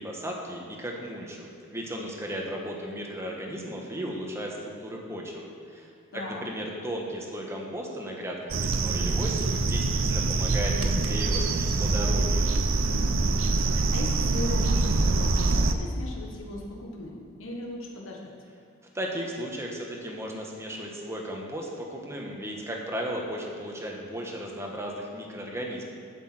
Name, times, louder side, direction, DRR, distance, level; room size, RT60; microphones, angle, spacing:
voice 1, 0.0-12.5 18.9-25.9, equal, 15° right, -1 dB, 1.4 m, -35 dB
voice 2, 6.1-6.5 12.8-13.4 13.9-18.3, left 1 dB, 80° left, -1 dB, 1.5 m, -38 dB
sound 1, 8.5-15.7, right 3 dB, 75° right, 0.7 m, -24 dB
8.0 x 6.2 x 7.9 m, 2.6 s
head